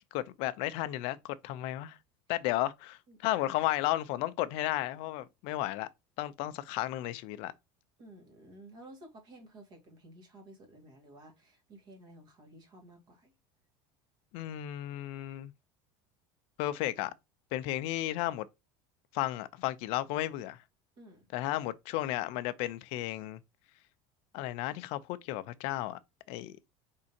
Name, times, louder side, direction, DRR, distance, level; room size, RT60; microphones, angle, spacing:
voice 1, 0.0-2.0 2.3-5.9 6.2-7.5 14.3-15.5 16.6-17.1 17.5-18.5 19.1-20.6 21.3-23.4 24.3-26.0 26.3-26.7, left 15 dB, 55° left, 0.5 m, -33 dB
voice 2, 8.0-13.3 21.0-21.3, right 1 dB, 40° right, 2.0 m, -53 dB
5.1 x 3.7 x 2.8 m
cardioid pair, 170°, 11 cm